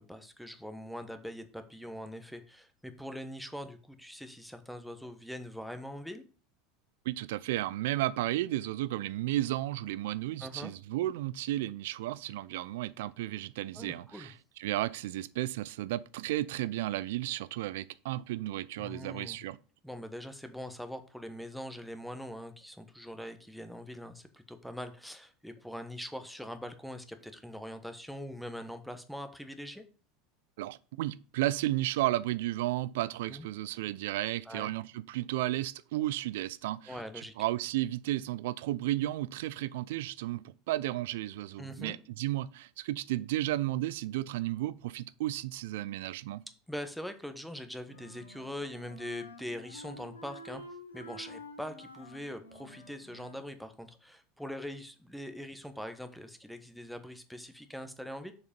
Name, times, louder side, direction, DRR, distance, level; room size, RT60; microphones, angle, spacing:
voice 1, 0.0-6.2 10.4-10.7 13.7-14.3 18.8-19.4 19.8-29.8 33.3-33.5 34.4-34.7 36.9-37.3 41.6-42.0 46.7-50.6 50.9-58.3, equal, ahead, 1.1 m, -42 dB
voice 2, 7.1-14.3 14.6-19.6 30.6-46.4, right 15 dB, 65° right, 0.4 m, -33 dB
Wind instrument woodwind instrument, 47.8-53.5, left 1 dB, 90° left, 1.3 m, -49 dB
6.6 x 4.9 x 5.2 m
hypercardioid pair, 80°, 0 cm